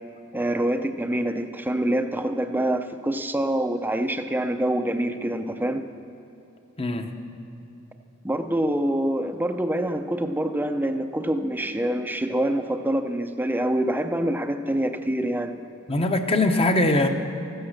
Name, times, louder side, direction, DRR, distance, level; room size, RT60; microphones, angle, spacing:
voice 1, 0.3-5.8 8.2-15.5, right 1 dB, 10° right, 8 dB, 0.6 m, -25 dB
voice 2, 6.8-7.1 15.9-17.1, left 2 dB, 30° left, 6 dB, 1.0 m, -21 dB
14.5 x 14.5 x 6.6 m, 3.0 s
head